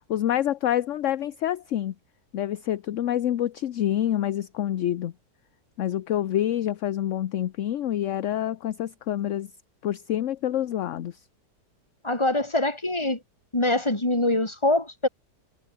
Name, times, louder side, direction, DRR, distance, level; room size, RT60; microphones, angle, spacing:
voice 1, 0.1-1.9 2.3-5.1 5.8-9.5 9.8-11.2, left 11 dB, 60° left, 0.9 m, -27 dB
voice 2, 12.0-13.2 13.5-15.1, left 2 dB, 15° left, 3.1 m, -24 dB
omnidirectional pair, 1.8 m